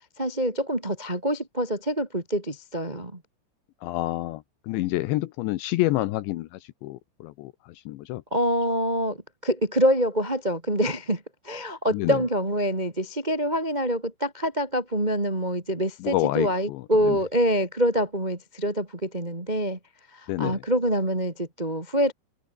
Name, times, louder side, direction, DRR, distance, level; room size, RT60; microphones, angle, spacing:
voice 1, 0.2-3.2 8.3-19.8 20.1-22.1, equal, 35° right, 0.7 m, -26 dB
voice 2, 3.8-8.2 11.9-12.2 16.0-17.2 20.3-20.6, left 17 dB, 80° left, 2.8 m, -28 dB
omnidirectional pair, 5.8 m